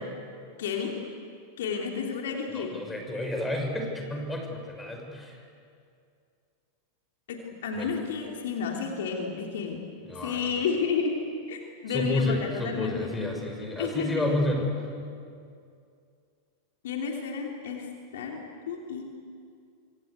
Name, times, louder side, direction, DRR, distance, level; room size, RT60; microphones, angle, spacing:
voice 1, 0.6-1.0 1.6-2.8 7.3-9.8 10.2-11.2 11.5-13.1 13.8-14.4 16.8-17.9 18.1-18.4 18.7-19.0, left 6 dB, 55° left, 1 dB, 3.3 m, -31 dB
voice 2, 2.5-5.4 7.7-8.0 10.1-10.6 11.9-14.7, left 2 dB, 10° left, 3 dB, 5.6 m, -30 dB
26.5 x 25.0 x 8.2 m, 2.4 s
figure-of-eight pair, 90°, 0 cm